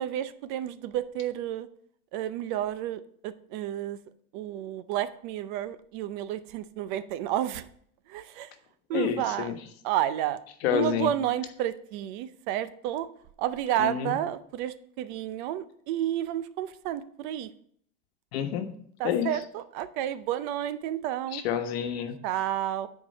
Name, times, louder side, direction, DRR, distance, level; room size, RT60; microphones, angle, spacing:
voice 1, 0.0-1.7 2.1-4.0 4.3-7.7 8.1-8.5 8.9-9.5 9.8-10.4 10.7-13.1 13.4-17.5 19.0-21.4 22.2-22.9, right 12 dB, 50° right, 13 dB, 0.6 m, -31 dB
voice 2, 8.9-9.6 10.6-11.1 13.8-14.1 18.3-18.7 19.0-19.3 21.3-22.1, left 9 dB, 75° left, 7 dB, 1.3 m, -28 dB
9.8 x 4.7 x 5.4 m, 0.64 s
supercardioid pair, 170°, 32 cm